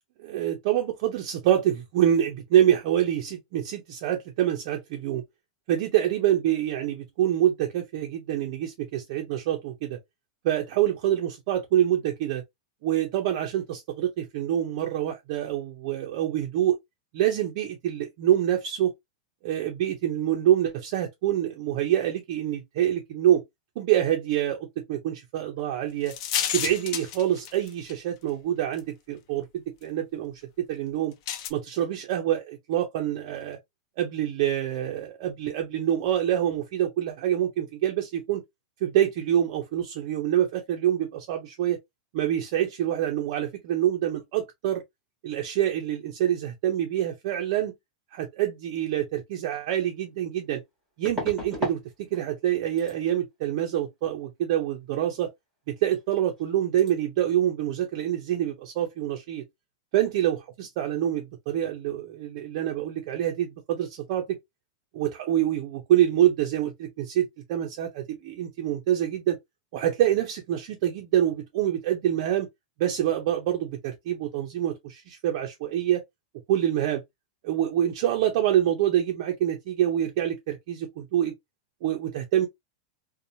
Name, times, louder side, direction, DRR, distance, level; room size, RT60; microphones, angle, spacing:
voice 1, 0.2-5.2 5.7-10.0 10.4-12.4 12.8-16.8 17.1-18.9 19.4-23.4 23.8-26.1 26.5-30.4 30.7-31.1 31.5-33.6 34.0-38.4 38.8-41.8 42.1-44.8 45.2-47.7 48.1-50.6 51.0-51.8 52.1-55.3 55.7-59.4 59.9-64.4 64.9-69.4 69.7-72.5 72.8-76.0 76.5-77.0 77.4-81.3 81.8-82.5, right 11 dB, 40° right, 0.4 m, -26 dB
sound 1, 26.1-27.9 28.8-28.9 31.3-31.5, left 9 dB, 40° left, 0.4 m, -30 dB
sound 2, 49.5-49.6 51.0-51.8 52.1-52.5 52.8-53.0 55.9-56.0 56.3-56.5 56.8-56.9, left 1 dB, 5° left, 1.0 m, -34 dB
2.8 x 2.0 x 2.6 m
supercardioid pair, 175°, 4 cm